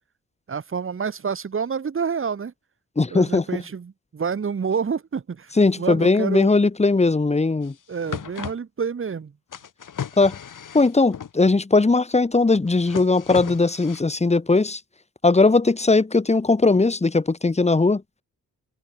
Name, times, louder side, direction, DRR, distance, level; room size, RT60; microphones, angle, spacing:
voice 1, 0.5-2.5 3.1-6.5 7.9-9.3, right 6 dB, 40° right, 1.4 m, -28 dB
voice 2, 3.0-3.4 5.6-7.7 10.2-10.3 10.7-14.8 15.2-18.0, left 3 dB, 20° left, 1.5 m, -19 dB
sound 1, 7.6-7.7 7.9-8.5 9.5-11.3 12.5-14.0, left 8 dB, 65° left, 3.3 m, -35 dB
open air
wide cardioid pair, 120°, 33 cm